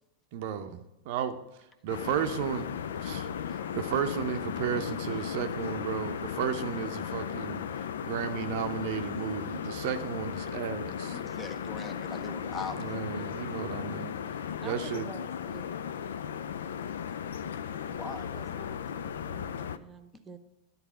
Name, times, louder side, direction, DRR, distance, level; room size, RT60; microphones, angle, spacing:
voice 1, 0.3-1.4 1.8-11.2 12.8-14.1 14.6-15.1, right 9 dB, 50° right, 7 dB, 0.6 m, -34 dB
sound 1, 1.9-19.8, left 8 dB, 65° left, 0.4 m, -36 dB
voice 2, 11.1-12.9 17.9-18.3, left 4 dB, 20° left, 9 dB, 0.8 m, -40 dB
voice 3, 14.6-15.7 18.2-20.4, right 4 dB, 20° right, 8 dB, 0.8 m, -48 dB
12.0 x 4.1 x 5.6 m, 0.94 s
figure-of-eight pair, 90°, 0 cm